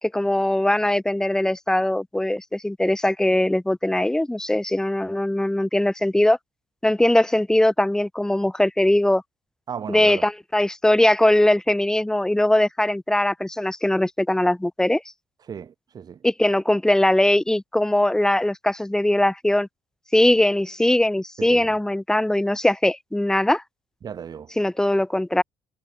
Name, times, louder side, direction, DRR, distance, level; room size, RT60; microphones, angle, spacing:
voice 1, 0.0-6.4 6.8-9.2 9.9-15.0 16.2-19.7 20.1-23.6 24.6-25.4, left 1 dB, 5° left, 1.5 m, -20 dB
voice 2, 9.7-10.2 15.5-16.3 21.4-21.8 24.0-24.6, right 7 dB, 45° right, 4.5 m, -35 dB
supercardioid pair, 75°, 9 cm